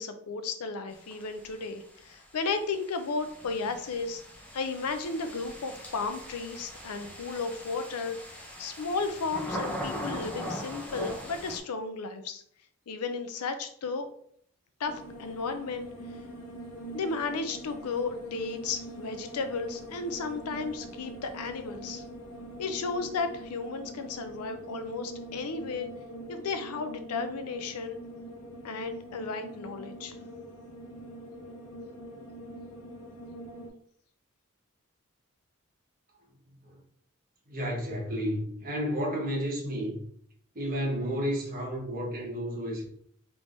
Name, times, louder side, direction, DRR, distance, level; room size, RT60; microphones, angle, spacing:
voice 1, 0.0-4.2 4.5-8.2 8.6-12.4 12.9-14.1 14.8-16.2 16.9-22.0 22.6-25.9 26.3-28.0 28.6-30.2, left 4 dB, 90° left, 0.5 m, -34 dB
sound 1, 0.9-11.6, equal, 5° left, 0.6 m, -40 dB
sound 2, 14.8-33.7, equal, 65° left, 0.8 m, -44 dB
voice 2, 37.5-40.0 40.5-42.8, equal, 40° right, 1.2 m, -31 dB
3.4 x 3.3 x 2.6 m
head